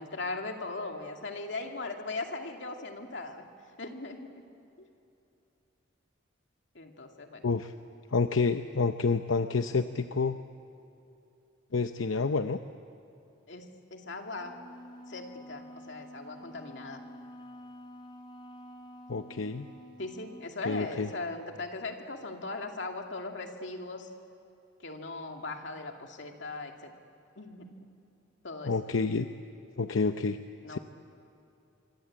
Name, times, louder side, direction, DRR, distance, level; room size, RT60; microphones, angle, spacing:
voice 1, 0.0-3.4 3.8-4.5 4.8-4.9 6.7-7.4 13.5-14.6 15.1-17.0 20.0-24.1 24.8-26.9 27.4-27.7 28.4-28.7 30.6-30.8, left 3 dB, 65° left, 3 dB, 2.5 m, -39 dB
voice 2, 8.1-10.4 11.7-12.6 19.1-19.7 20.6-21.1 28.6-29.3 29.8-30.4 30.7-30.8, left 4 dB, 90° left, 8 dB, 0.7 m, -28 dB
Wind instrument woodwind instrument, 14.4-20.6, equal, 25° left, 2.4 m, -49 dB
25.0 x 25.0 x 8.7 m, 2.8 s
head